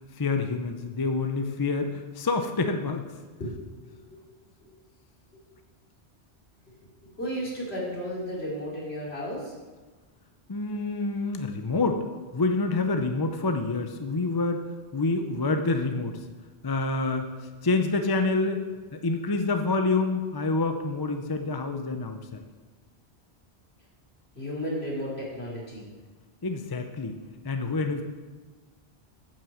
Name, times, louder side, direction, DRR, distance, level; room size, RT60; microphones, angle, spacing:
voice 1, 0.2-3.0 10.5-12.0 12.3-16.2 16.6-17.3 17.6-18.7 18.9-22.4 26.4-27.2 27.4-28.0, left 3 dB, 25° left, 6 dB, 0.5 m, -27 dB
voice 2, 3.9-4.2 7.0-9.5 24.4-25.9, equal, 70° left, -6 dB, 3.4 m, -33 dB
9.0 x 5.9 x 7.2 m, 1.3 s
omnidirectional pair, 1.1 m